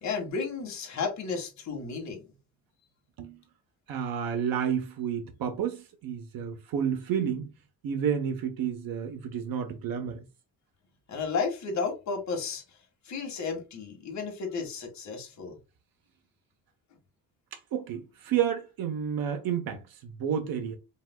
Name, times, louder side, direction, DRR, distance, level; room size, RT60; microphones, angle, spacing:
voice 1, 0.0-2.2 11.1-12.6 13.1-15.6, left 5 dB, 50° left, 1.8 m, -33 dB
voice 2, 3.9-7.5 7.8-10.2 17.5-20.8, right 8 dB, 70° right, 1.1 m, -30 dB
5.4 x 3.4 x 2.3 m
cardioid pair, 165°, 35 cm